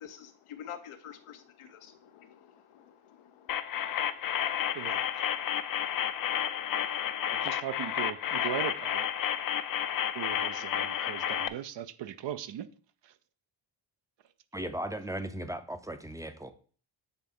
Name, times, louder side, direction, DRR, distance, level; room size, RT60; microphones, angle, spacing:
voice 1, 0.0-5.1, left 9 dB, 90° left, 0.9 m, -49 dB
sound 1, 3.5-11.5, left 10 dB, 45° left, 0.5 m, -31 dB
voice 2, 4.7-5.0 7.3-9.1 10.1-12.7 13.0-13.1, right 10 dB, 60° right, 0.6 m, -38 dB
voice 3, 14.5-16.5, right 1 dB, 5° right, 0.5 m, -37 dB
8.0 x 3.4 x 3.6 m
cardioid pair, 90°, 49 cm